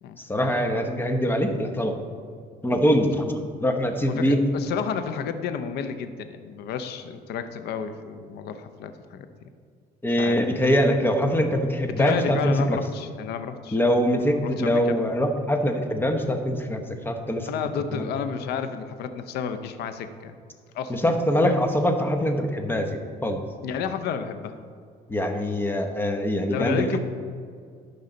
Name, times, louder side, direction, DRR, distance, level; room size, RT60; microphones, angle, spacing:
voice 1, 0.2-2.0 2.6-4.4 10.0-12.8 13.7-17.5 17.9-18.1 20.9-23.4 25.1-27.0, equal, 10° left, 5 dB, 0.9 m, -23 dB
voice 2, 4.1-9.3 10.2-10.4 11.9-13.8 14.3-15.2 17.5-20.3 20.7-21.1 21.4-21.6 23.6-24.6 26.5-27.0, left 7 dB, 75° left, 9 dB, 0.7 m, -31 dB
13.0 x 5.6 x 3.9 m, 2.1 s
cardioid pair, 110°, 17 cm